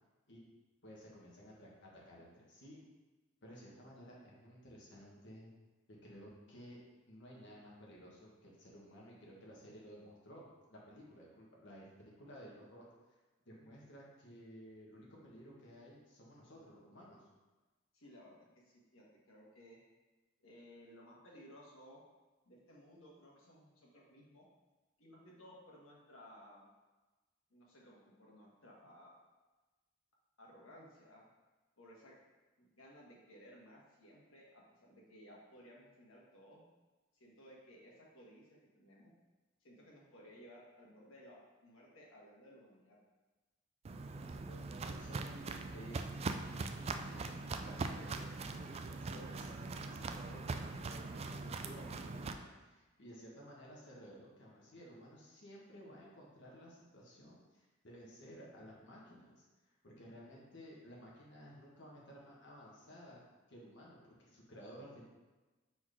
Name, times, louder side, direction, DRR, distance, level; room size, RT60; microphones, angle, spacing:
voice 1, 0.8-2.8 3.4-5.5 6.0-6.8 7.1-12.8 13.4-17.2 44.2-45.3 45.7-46.0 46.6-59.5 59.8-63.2 63.5-65.0, equal, 65° left, -4 dB, 1.5 m, -55 dB
voice 2, 17.9-18.4 18.6-19.8 20.4-22.0 22.4-24.4 25.0-26.7 27.5-29.2 30.4-31.3 31.8-32.1 32.6-36.7 37.1-39.1 39.6-43.0, equal, 85° left, -4 dB, 1.5 m, -58 dB
Walk footsteps, 43.8-52.3, right 3 dB, 30° right, 0.3 m, -41 dB
4.6 x 4.1 x 4.9 m, 1.2 s
head